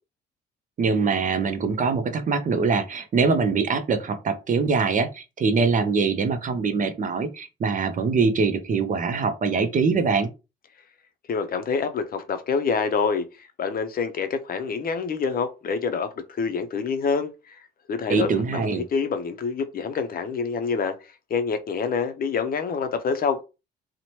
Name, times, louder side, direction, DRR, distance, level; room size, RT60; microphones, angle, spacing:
voice 1, 0.8-10.3 18.1-18.8, right 4 dB, 40° right, 0.5 m, -23 dB
voice 2, 11.3-17.6 17.9-21.0 21.3-23.4, left 5 dB, 50° left, 0.5 m, -27 dB
2.8 x 2.1 x 3.0 m
cardioid pair, 90°, 20 cm